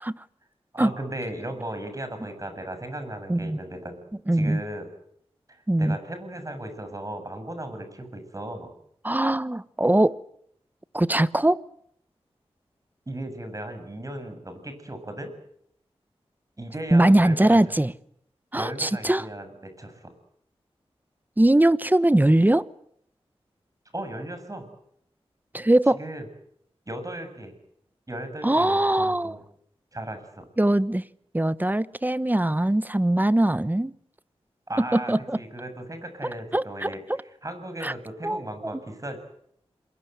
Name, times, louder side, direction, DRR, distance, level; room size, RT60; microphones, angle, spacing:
voice 1, 0.7-4.0 4.3-4.9 5.5-8.7 13.1-15.3 16.6-17.6 18.6-20.1 23.9-24.7 26.0-26.2 26.9-27.5 28.1-29.4 29.9-30.5 34.7-39.2, right 1 dB, 30° right, 7.4 m, -36 dB
voice 2, 4.3-4.6 5.7-6.0 9.0-10.2 10.9-11.6 16.9-17.9 18.5-19.3 21.4-22.6 25.5-26.0 28.4-29.4 30.6-31.0 31.3-33.9 34.8-35.4 36.5-37.2 37.8-37.9 38.2-38.7, right 1 dB, 15° right, 1.0 m, -21 dB
28.0 x 22.5 x 8.2 m
cardioid pair, 55°, 11 cm